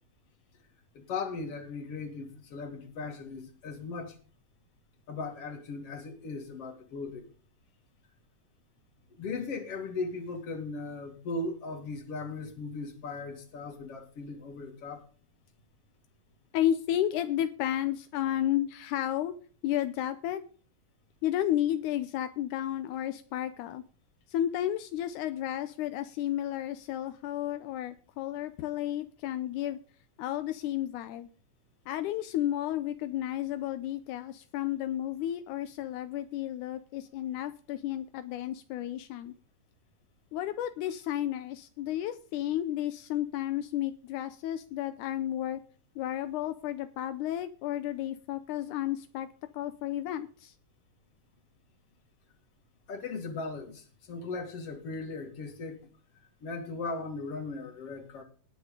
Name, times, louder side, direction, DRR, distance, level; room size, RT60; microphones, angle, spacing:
voice 1, 0.9-4.2 5.1-7.3 9.2-15.0 52.9-55.8 56.4-58.2, left 3 dB, 50° left, 5 dB, 3.1 m, -38 dB
voice 2, 16.5-19.3 19.6-20.4 21.2-23.8 24.3-29.8 30.2-31.3 31.9-39.3 40.3-45.6 46.0-49.3 49.5-50.5, left 12 dB, 85° left, 10 dB, 2.2 m, -32 dB
19.5 x 7.0 x 3.8 m, 0.42 s
omnidirectional pair, 3.6 m